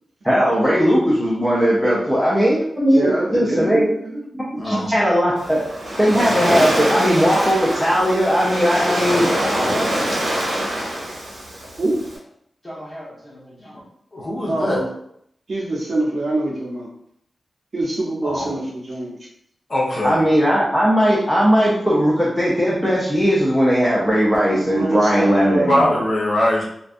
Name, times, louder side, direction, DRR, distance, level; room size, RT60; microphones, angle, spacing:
voice 1, 0.2-3.9 4.6-5.6 6.0-9.3 20.0-25.9, equal, 5° left, -7 dB, 0.4 m, -18 dB
voice 2, 2.9-4.2 4.5-4.8 11.8-12.0 14.5-14.9 15.5-16.9 17.7-19.1 24.5-25.8, right 2 dB, 45° right, -4 dB, 0.6 m, -24 dB
voice 3, 4.6-4.9 14.1-14.9 18.2-18.6 19.7-20.2 25.7-26.6, left 1 dB, 45° left, -5 dB, 0.6 m, -21 dB
Waves surf, 5.4-12.2, right 1 dB, 85° right, 0.8 m, -24 dB
voice 4, 9.3-11.1 12.6-13.9, equal, 25° left, -7 dB, 0.9 m, -32 dB
2.5 x 2.2 x 2.4 m, 0.73 s
wide cardioid pair, 160°, 0 cm